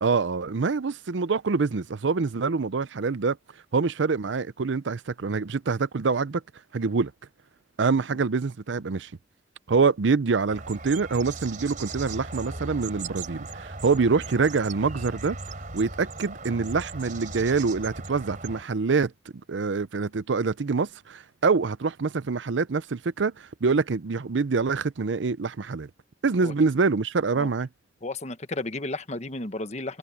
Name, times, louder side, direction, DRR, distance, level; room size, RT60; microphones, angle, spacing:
voice 1, 0.0-3.4 3.7-6.4 6.7-7.1 7.8-9.1 9.7-15.4 15.7-19.1 19.5-25.9 26.2-27.7, right 4 dB, 80° right, 0.6 m, -25 dB
sound 1, 10.5-18.6, right 3 dB, 45° right, 3.8 m, -38 dB
voice 2, 28.0-30.0, left 2 dB, 35° left, 1.2 m, -33 dB
head